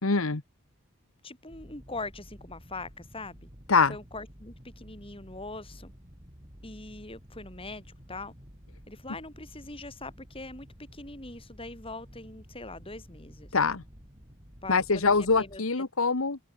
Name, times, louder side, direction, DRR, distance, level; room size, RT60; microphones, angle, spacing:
voice 1, 0.0-0.4 3.7-3.9 13.5-13.8 14.7-16.4, left 4 dB, 70° left, 1.3 m, -24 dB
voice 2, 1.2-3.5 3.9-5.9 6.6-8.3 8.9-10.7 10.9-13.5 14.6-15.9, left 2 dB, 25° left, 7.1 m, -42 dB
sound 1, 1.5-15.6, equal, 25° right, 7.3 m, -51 dB
open air
head